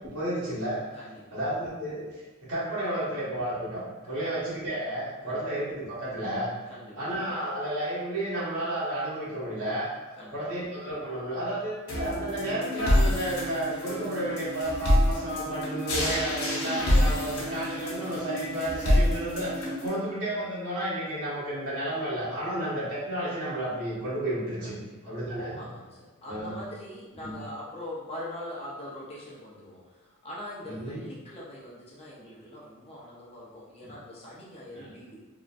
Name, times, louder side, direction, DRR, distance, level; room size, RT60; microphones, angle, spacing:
voice 1, 0.0-0.8 1.3-6.5 7.0-9.9 10.3-24.8 25.1-25.6 26.2-26.6 27.2-27.3 30.6-31.0 33.8-33.9 34.7-34.9, right 1 dB, 85° right, -10 dB, 1.5 m, -32 dB
voice 2, 0.9-1.4 4.1-4.2 5.2-5.5 6.7-7.1 10.2-10.6 24.6-25.1 25.5-35.2, left 1 dB, 30° left, -7 dB, 0.7 m, -42 dB
sound 1, 11.9-19.9, left 1 dB, 90° left, 0.9 m, -27 dB
3.8 x 2.1 x 2.5 m, 1.2 s
head